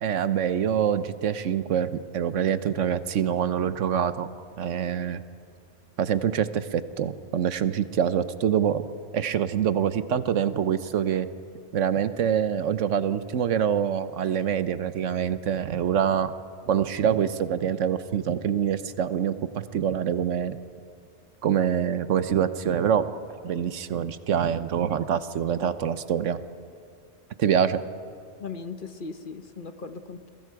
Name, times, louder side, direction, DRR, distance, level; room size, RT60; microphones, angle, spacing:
voice 1, 0.0-4.3 4.6-5.2 6.0-8.8 9.1-11.3 11.7-16.3 16.7-20.6 21.4-23.1 23.4-26.4 27.4-27.8, right 8 dB, 75° right, 12 dB, 1.2 m, -25 dB
voice 2, 28.4-30.3, left 4 dB, 45° left, 9 dB, 1.0 m, -38 dB
30.0 x 23.0 x 4.7 m, 2.5 s
omnidirectional pair, 1.3 m